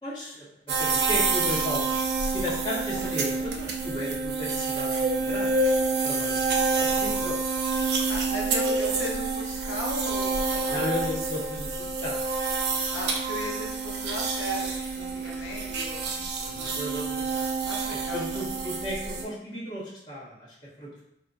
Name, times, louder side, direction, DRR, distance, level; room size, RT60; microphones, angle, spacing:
voice 1, 0.0-5.6 6.0-7.4 10.7-12.2 16.4-17.5 18.1-21.0, left 1 dB, 25° left, -8 dB, 1.0 m, -35 dB
sound 1, 0.7-19.3, right 3 dB, 70° right, 0.4 m, -28 dB
voice 2, 8.1-10.8 12.9-16.8 17.6-18.4, left 1 dB, 75° left, -2 dB, 0.4 m, -37 dB
2.1 x 2.1 x 3.8 m, 0.76 s
head